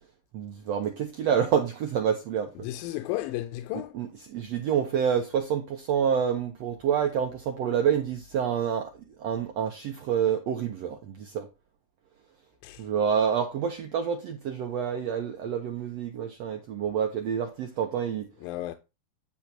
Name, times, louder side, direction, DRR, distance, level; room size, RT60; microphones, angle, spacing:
voice 1, 0.3-2.7 3.7-11.5 12.8-18.3, right 8 dB, 80° right, 1.5 m, -28 dB
voice 2, 2.6-4.0 12.6-12.9 18.4-18.8, left 15 dB, 85° left, 2.4 m, -33 dB
9.9 x 3.5 x 5.9 m
omnidirectional pair, 4.2 m